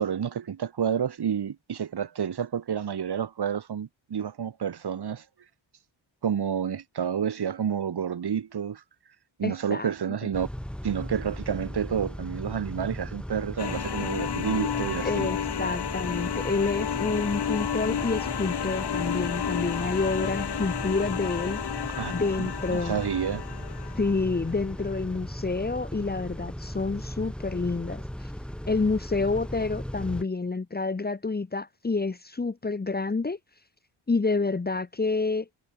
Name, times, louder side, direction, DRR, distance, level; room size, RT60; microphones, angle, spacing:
voice 1, 0.0-5.2 6.2-8.8 9.4-10.5 10.8-15.3 22.0-23.4, right 8 dB, 55° right, 4.4 m, -29 dB
voice 2, 9.4-9.9 15.0-21.6 22.1-23.0 24.0-28.3 28.7-33.4 34.1-35.5, left 3 dB, 20° left, 1.5 m, -28 dB
Car / Idling / Accelerating revving vroom, 10.3-30.2, equal, ahead, 6.6 m, -37 dB
sound 1, 13.6-24.4, left 8 dB, 55° left, 3.4 m, -32 dB
wide cardioid pair, 140°, 47 cm